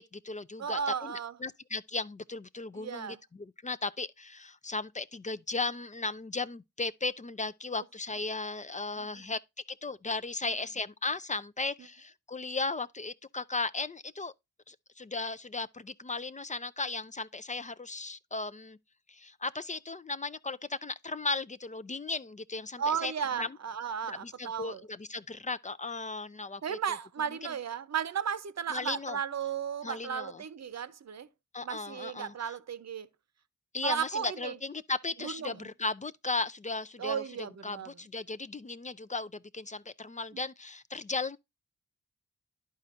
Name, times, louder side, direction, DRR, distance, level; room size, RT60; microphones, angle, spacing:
voice 1, 0.0-9.4 9.8-14.3 14.7-18.8 19.1-23.6 24.1-26.8 28.7-29.2 29.8-30.4 31.5-32.5 33.7-37.2 37.6-41.4, left 3 dB, 25° left, 0.4 m, -36 dB
voice 2, 0.6-1.4 2.7-3.2 9.0-9.2 10.4-10.5 22.8-24.8 26.6-31.3 31.6-33.1 33.8-34.6 35.2-35.7 37.0-37.9, right 7 dB, 55° right, 0.7 m, -35 dB
11.5 x 4.3 x 2.5 m
cardioid pair, 50°, 33 cm